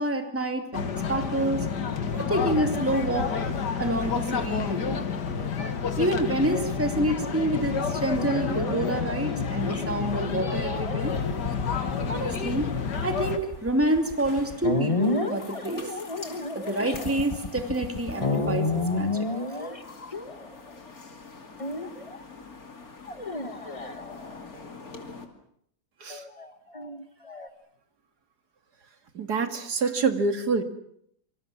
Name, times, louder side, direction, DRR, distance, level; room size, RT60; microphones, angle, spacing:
voice 1, 0.0-1.7 2.1-3.3 3.8-5.0 6.0-11.2 12.1-12.7 13.0-15.9 16.5-19.3, right 1 dB, 10° right, 6 dB, 2.7 m, -28 dB
sound 1, 0.7-13.4, left 6 dB, 85° left, 2.4 m, -29 dB
sound 2, 8.2-20.8 21.6-22.2 23.0-24.5 26.1-27.5, left 3 dB, 20° left, 1.7 m, -32 dB
sound 3, 11.1-25.2, left 3 dB, 60° left, 3.2 m, -46 dB
voice 2, 29.1-30.6, right 4 dB, 70° right, 8 dB, 2.7 m, -26 dB
26.5 x 25.5 x 7.3 m, 0.70 s
omnidirectional pair, 1.8 m